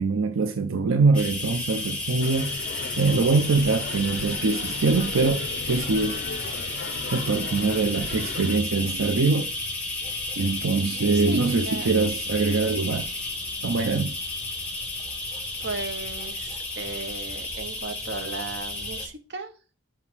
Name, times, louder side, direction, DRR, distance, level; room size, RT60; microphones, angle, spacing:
voice 1, 0.0-6.2 7.1-9.5 10.4-13.1 13.6-14.2, right 4 dB, 80° right, 0.5 m, -23 dB
sound 1, 1.1-19.1, left 2 dB, 5° left, 1.5 m, -32 dB
sound 2, 2.2-8.6, left 4 dB, 50° left, 0.4 m, -37 dB
voice 2, 11.3-11.9 15.6-19.5, right 3 dB, 55° right, 0.9 m, -36 dB
5.9 x 4.4 x 6.1 m
head